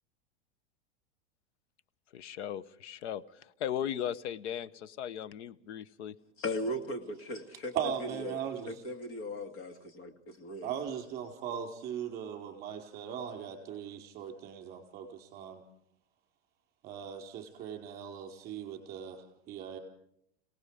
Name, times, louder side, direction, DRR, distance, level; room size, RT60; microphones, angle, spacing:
voice 1, 2.1-6.2, left 10 dB, 90° left, 18 dB, 1.0 m, -37 dB
voice 2, 6.4-8.4 8.7-10.7, left 1 dB, 40° left, 8 dB, 2.3 m, -38 dB
voice 3, 7.7-8.8 10.6-15.6 16.8-19.8, right 8 dB, 30° right, 4 dB, 4.6 m, -39 dB
28.5 x 18.5 x 5.0 m, 0.71 s
supercardioid pair, 155°, 33 cm